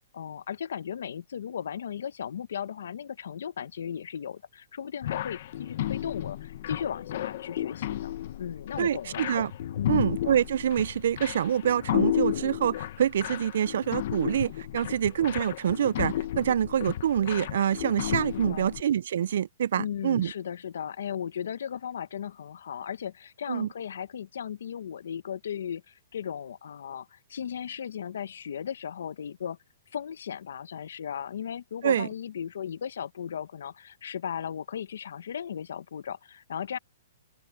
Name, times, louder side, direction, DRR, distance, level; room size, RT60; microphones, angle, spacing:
voice 1, 0.1-9.3 9.8-10.1 18.3-18.8 19.8-29.6 29.9-36.8, left 8 dB, 70° left, 0.9 m, -36 dB
sound 1, 5.0-18.8, left 12 dB, 45° left, 1.0 m, -33 dB
voice 2, 8.8-9.5 9.9-20.3 23.5-23.7 31.8-32.1, right 9 dB, 60° right, 0.3 m, -26 dB
open air
hypercardioid pair, 170°, 0 cm